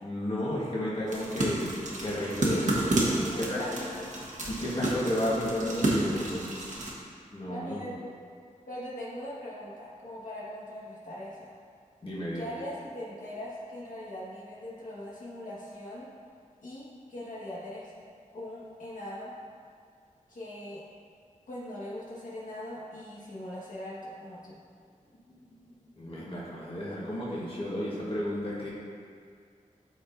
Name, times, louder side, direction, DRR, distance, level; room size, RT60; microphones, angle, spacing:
voice 1, 0.0-1.7 2.0-3.0 3.4-3.6 4.5-6.5 7.3-7.8 12.0-12.5 25.5-25.7 26.0-28.7, left 1 dB, 40° left, -7 dB, 1.5 m, -32 dB
sound 1, 1.1-6.9, right 2 dB, 65° right, 1.3 m, -30 dB
voice 2, 3.2-4.1 6.1-6.4 7.5-8.1 8.7-11.6 12.3-16.1 16.6-17.9 18.3-19.3 20.3-20.8 21.5-24.5, left 1 dB, 75° left, -7 dB, 1.7 m, -40 dB
12.5 x 4.4 x 2.7 m, 2.2 s
wide cardioid pair, 115°, 14 cm